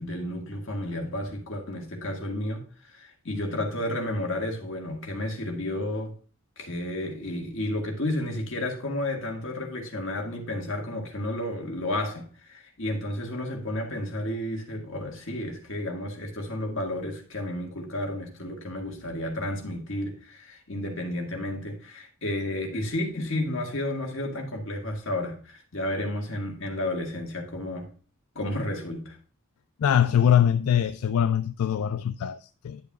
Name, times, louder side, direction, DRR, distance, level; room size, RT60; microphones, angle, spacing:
voice 1, 0.0-6.2 6.6-27.9 28.4-29.2, left 1 dB, 60° left, 1.9 m, -32 dB
voice 2, 29.8-32.8, left 9 dB, 75° left, 0.3 m, -23 dB
10.5 x 6.8 x 2.4 m
head